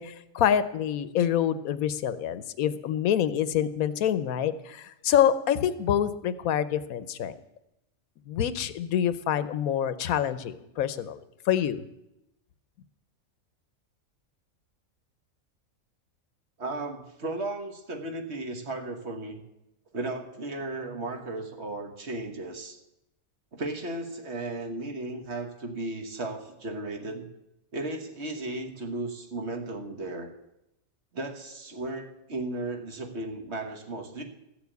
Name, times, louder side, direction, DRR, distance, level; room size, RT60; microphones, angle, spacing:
voice 1, 0.0-7.3 8.3-11.2 11.5-11.8, left 9 dB, 85° left, 13 dB, 1.2 m, -26 dB
voice 2, 16.6-19.4 19.9-22.8 23.5-27.2 27.7-30.3 31.1-34.2, right 2 dB, 50° right, 4 dB, 1.7 m, -35 dB
14.5 x 7.0 x 8.1 m, 0.88 s
omnidirectional pair, 1.4 m